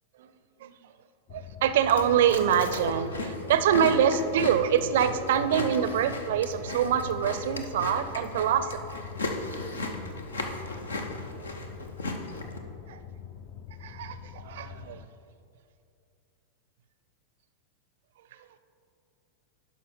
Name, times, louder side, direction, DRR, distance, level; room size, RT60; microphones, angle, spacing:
sound 1, 1.3-15.1, left 8 dB, 40° left, 0.5 m, -45 dB
voice 1, 1.3-8.8 12.9-13.0 13.8-15.1, right 9 dB, 55° right, 12 dB, 0.5 m, -25 dB
Chewing mastication, 1.8-12.6, left 2 dB, 70° left, 0.8 m, -36 dB
11.0 x 5.5 x 4.3 m, 2.6 s
figure-of-eight pair, 90°, 0 cm